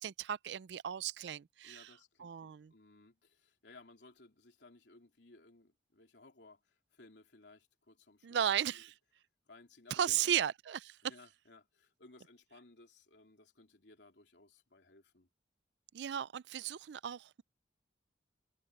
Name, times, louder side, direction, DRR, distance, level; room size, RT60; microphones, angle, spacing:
voice 1, 0.0-1.9 2.2-2.7 8.2-8.9 9.9-11.0 15.9-17.4, right 9 dB, 75° right, 0.4 m, -35 dB
voice 2, 1.6-8.4 8.7-8.8 9.5-10.3 11.0-15.3, left 2 dB, 75° left, 3.2 m, -60 dB
head